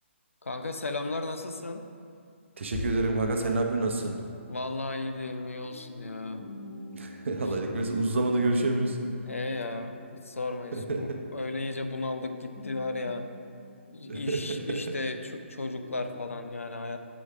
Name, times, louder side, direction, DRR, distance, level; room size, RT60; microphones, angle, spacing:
voice 1, 0.4-1.9 4.5-6.4 9.2-13.3 13.9-17.0, left 2 dB, 90° left, 7 dB, 0.5 m, -35 dB
voice 2, 2.6-4.1 6.9-9.0 10.7-11.2 14.1-14.9, right 2 dB, 65° right, 3 dB, 0.7 m, -28 dB
Bass drum, 2.7-4.4, left 3 dB, 50° left, 0.8 m, -40 dB
sound 1, 5.1-15.1 15.5-16.2, left 1 dB, 5° left, 1.4 m, -48 dB
7.1 x 4.8 x 3.4 m, 2.4 s
figure-of-eight pair, 140°, 7 cm